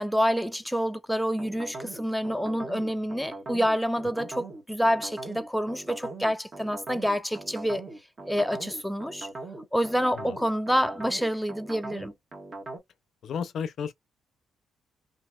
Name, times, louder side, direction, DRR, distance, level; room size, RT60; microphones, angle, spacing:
voice 1, 0.0-7.8 8.3-9.3 9.7-12.1, equal, ahead, 0.4 m, -27 dB
sound 1, 1.4-12.8, right 2 dB, 35° right, 1.3 m, -40 dB
voice 2, 13.2-13.9, left 7 dB, 65° left, 0.5 m, -33 dB
3.0 x 2.7 x 2.2 m
cardioid pair, 90°, 0 cm